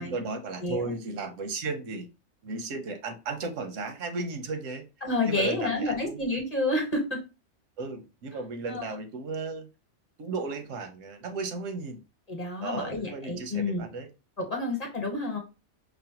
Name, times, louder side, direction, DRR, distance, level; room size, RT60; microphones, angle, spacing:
voice 1, 0.0-2.1 2.4-4.8 5.3-6.2 7.8-9.7 10.2-12.0 12.6-14.1, right 3 dB, 90° right, 7 dB, 1.1 m, -35 dB
voice 2, 0.6-0.9 5.0-7.2 8.7-8.9 12.3-13.9 14.4-15.4, left 2 dB, 35° left, 1 dB, 1.1 m, -29 dB
5.4 x 2.1 x 2.8 m, 0.29 s
omnidirectional pair, 1.3 m